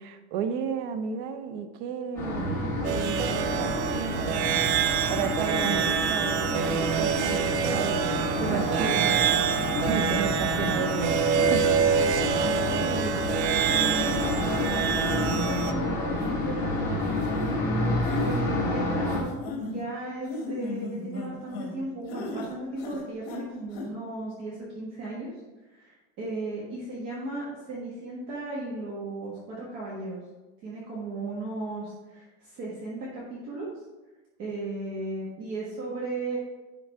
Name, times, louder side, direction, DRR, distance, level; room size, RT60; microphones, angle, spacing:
voice 1, 0.0-4.6 5.1-9.4 9.8-11.2 11.5-11.8, right 7 dB, 50° right, 8 dB, 0.8 m, -33 dB
sound 1, 2.2-19.2, left 2 dB, 10° left, 1.7 m, -29 dB
Tanpura in E, 2.8-15.7, right 8 dB, 85° right, 0.7 m, -26 dB
sound 2, 7.6-7.7 8.4-9.0 9.5-10.0 10.5-10.7 11.3-11.6 12.1-12.5 13.1-13.2 13.5-13.7 14.1-14.2 14.6-14.9 15.3-15.5 16.2-16.4 17.0-17.5 18.0-18.4 19.1-19.8 20.3-21.8 22.1-22.5 22.8-23.4 23.7-23.9, left 2 dB, 70° left, 1.9 m, -37 dB
voice 2, 12.7-13.2 13.8-16.9 18.1-25.3 25.7-30.2 30.6-33.7 34.4-36.4, right 2 dB, 35° right, -5 dB, 1.5 m, -36 dB
9.9 x 3.9 x 4.8 m, 1.2 s
supercardioid pair, 180°, 33 cm